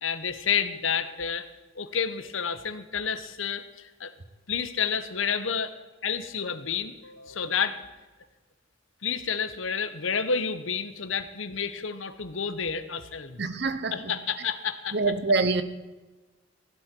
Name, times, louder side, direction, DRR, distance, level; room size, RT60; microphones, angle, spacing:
voice 1, 0.0-1.5 1.7-4.1 4.5-5.8 6.0-7.8 9.0-13.4 13.9-15.0, left 6 dB, 85° left, 1.1 m, -30 dB
voice 2, 13.4-14.2 14.9-15.6, right 3 dB, 55° right, 1.0 m, -25 dB
16.0 x 11.5 x 4.6 m
head